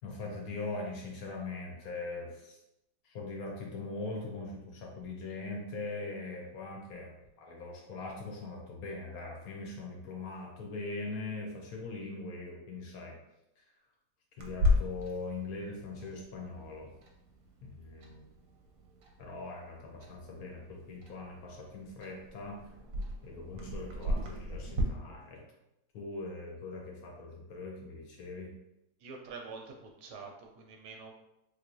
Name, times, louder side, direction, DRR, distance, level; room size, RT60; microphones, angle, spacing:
voice 1, 0.0-2.6 3.0-13.2 13.6-13.7 14.4-16.9 17.6-18.3 19.2-22.6 23.2-25.4 25.9-28.5, left 3 dB, 65° left, 0 dB, 1.0 m, -41 dB
Clock, 14.4-24.8, left 2 dB, 65° right, 0.9 m, -36 dB
voice 2, 29.0-31.1, right 4 dB, 85° right, 2 dB, 1.2 m, -46 dB
3.4 x 3.0 x 2.6 m, 0.88 s
omnidirectional pair, 1.8 m